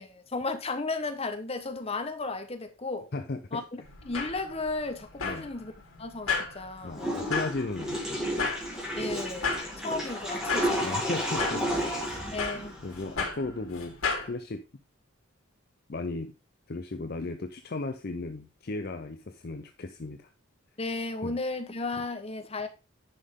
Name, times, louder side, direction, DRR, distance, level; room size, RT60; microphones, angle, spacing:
voice 1, 0.0-3.1 3.5-5.7 6.0-7.3 8.9-11.0 12.3-12.7 20.8-22.7, left 3 dB, 30° left, 1.1 m, -34 dB
voice 2, 3.1-3.6 5.2-5.5 6.8-8.3 10.8-11.9 12.8-13.9 14.2-14.6 15.9-16.3 16.7-20.3 21.2-21.4, left 3 dB, 45° left, 0.6 m, -35 dB
sound 1, 3.8-14.3, left 4 dB, 85° left, 3.1 m, -35 dB
Water / Toilet flush, 6.9-13.1, equal, 5° right, 2.5 m, -32 dB
10.0 x 5.6 x 3.7 m
head